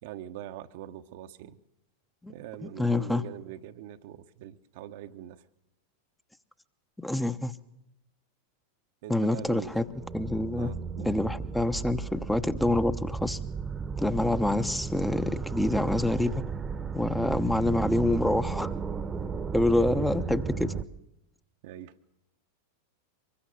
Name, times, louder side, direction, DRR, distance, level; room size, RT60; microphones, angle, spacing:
voice 1, 0.0-1.6 2.3-5.4 9.0-9.8 10.5-11.1 20.0-20.1 21.6-22.0, right 12 dB, 50° right, 1.0 m, -42 dB
voice 2, 2.6-3.2 7.0-7.5 9.1-9.8 10.1-10.7 11.0-13.4 14.0-16.4 16.9-18.7 19.5-20.7, left 2 dB, 5° left, 1.0 m, -27 dB
sound 1, 9.4-20.8, right 6 dB, 20° right, 1.1 m, -34 dB
25.0 x 21.5 x 6.7 m
figure-of-eight pair, 90°, 0 cm